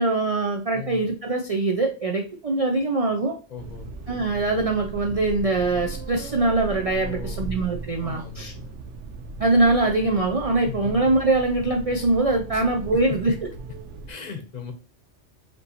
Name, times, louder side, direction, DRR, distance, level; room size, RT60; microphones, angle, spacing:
voice 1, 0.0-3.3 4.1-8.5 9.4-13.3, right 2 dB, 50° right, 2 dB, 0.4 m, -23 dB
voice 2, 0.7-1.0 3.5-3.9 7.0-7.5 8.0-8.8 10.6-11.0 12.5-13.4 14.1-14.7, left 8 dB, 40° left, 6 dB, 0.8 m, -37 dB
sound 1, 3.6-14.1, right 3 dB, 75° right, 0.9 m, -37 dB
5.1 x 3.0 x 2.8 m, 0.36 s
omnidirectional pair, 1.2 m